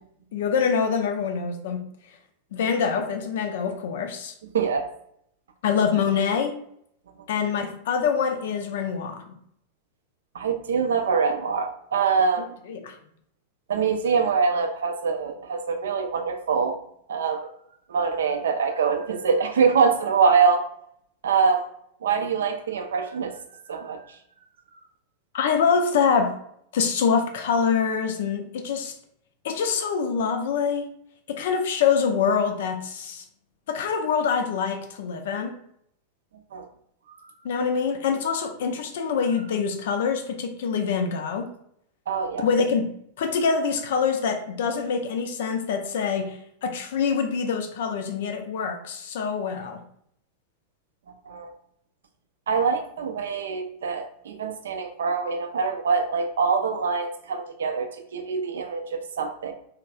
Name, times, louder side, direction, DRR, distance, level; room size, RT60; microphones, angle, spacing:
voice 1, 0.3-1.9 2.5-4.3 5.6-6.5 7.3-9.2 12.7-13.0 25.3-26.4 26.7-28.9 29.4-30.9 31.3-33.2 33.7-35.5 37.4-41.5 42.4-42.9 43.2-49.8, left 6 dB, 55° left, 5 dB, 0.4 m, -25 dB
voice 2, 4.5-4.9 10.3-12.5 13.7-16.8 17.1-17.5 17.9-20.7 21.2-21.6 22.0-24.2 36.5-36.7 42.1-42.4 51.3-51.5 52.5-59.5, right 5 dB, 65° right, 6 dB, 0.4 m, -24 dB
3.1 x 2.4 x 2.3 m, 0.69 s
figure-of-eight pair, 90°, 0 cm